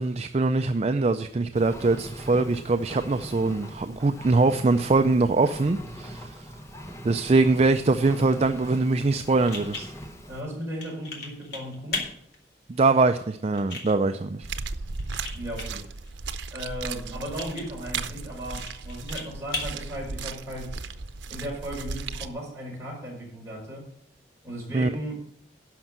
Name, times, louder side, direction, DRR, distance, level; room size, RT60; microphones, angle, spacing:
voice 1, 0.0-6.5 7.0-9.9 12.7-14.5 24.7-24.9, right 3 dB, 35° right, 9 dB, 0.4 m, -23 dB
Engine, 1.5-10.4, equal, 15° left, 1.0 m, -41 dB
sound 1, 9.4-20.9, left 3 dB, 60° left, 3.0 m, -40 dB
voice 2, 10.3-12.1 15.3-15.8 16.5-20.8 21.3-23.9 24.4-25.2, equal, 15° right, -4 dB, 4.8 m, -36 dB
sound 2, 14.4-22.3, right 4 dB, 90° right, 0.7 m, -36 dB
12.0 x 5.4 x 7.5 m, 0.70 s
head